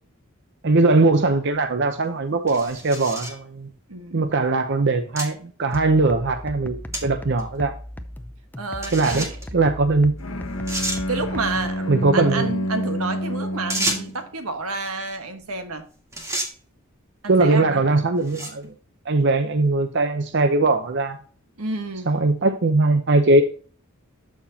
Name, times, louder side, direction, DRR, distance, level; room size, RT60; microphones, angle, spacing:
voice 1, 0.6-3.7 4.1-7.7 8.9-9.3 9.5-10.1 11.9-12.5 17.3-18.7 19.1-21.2 22.1-23.4, right 3 dB, 55° right, 0.7 m, -20 dB
sound 1, 1.5-1.6 2.5-3.4 4.2-4.3 5.2-5.3 5.7-5.8 6.9-7.0 7.4-7.5 8.8-9.5 10.2-10.3 10.7-11.0 13.7-14.2 15.6-15.8 16.1-16.5 17.3-17.6 18.2-18.6, right 1 dB, 15° right, 1.7 m, -29 dB
voice 2, 3.9-4.3 8.6-9.4 11.0-15.8 17.2-18.0 21.6-22.1, right 3 dB, 85° right, 1.4 m, -30 dB
sound 2, 5.7-11.7, equal, 10° left, 0.6 m, -37 dB
Bowed string instrument, 10.2-14.3, equal, 70° left, 1.0 m, -28 dB
12.5 x 4.5 x 2.8 m
head